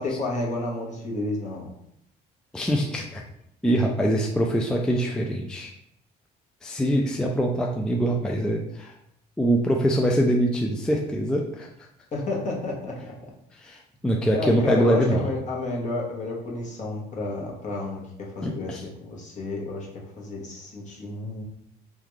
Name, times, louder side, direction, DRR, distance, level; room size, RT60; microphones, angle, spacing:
voice 1, 0.0-1.7 12.1-13.1 14.3-19.9 20.2-21.4, left 2 dB, 45° left, -2 dB, 1.0 m, -31 dB
voice 2, 2.5-3.2 3.6-5.7 6.6-8.9 9.4-11.7 13.6-15.3 18.4-18.8, right 1 dB, 5° left, 0 dB, 0.3 m, -24 dB
3.6 x 2.3 x 3.1 m, 0.75 s
cardioid pair, 110°, 17 cm